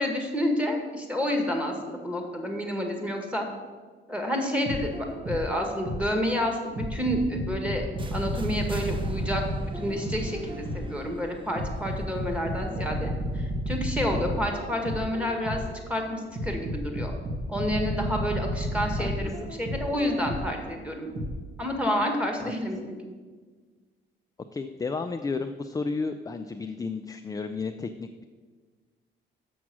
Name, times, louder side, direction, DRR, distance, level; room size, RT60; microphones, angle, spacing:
voice 1, 0.0-3.4 4.1-7.9 8.1-15.6 15.9-17.1 17.5-21.1 21.6-23.0, equal, 5° right, 2 dB, 1.7 m, -29 dB
sound 1, 4.7-6.2 6.8-11.0 11.6-15.8 16.4-20.6 21.2-21.3, equal, 55° right, 1.8 m, -32 dB
sound 2, 8.0-13.8, right 2 dB, 25° right, 0.7 m, -42 dB
voice 2, 19.0-19.3 24.5-28.2, left 4 dB, 20° left, 7 dB, 0.4 m, -32 dB
7.0 x 6.2 x 6.1 m, 1.5 s
cardioid pair, 90°, 20 cm